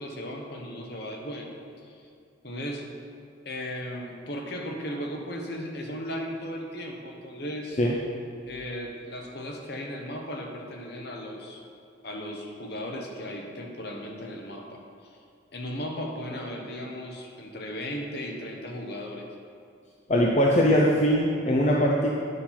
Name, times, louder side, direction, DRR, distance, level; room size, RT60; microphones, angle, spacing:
voice 1, 0.0-1.6 1.8-2.1 2.4-2.9 3.4-7.7 8.5-11.6 12.0-15.1 15.5-19.3, equal, 55° left, 1 dB, 1.1 m, -36 dB
voice 2, 20.1-22.1, equal, 35° left, -3 dB, 0.6 m, -21 dB
9.7 x 5.7 x 4.3 m, 2.4 s
head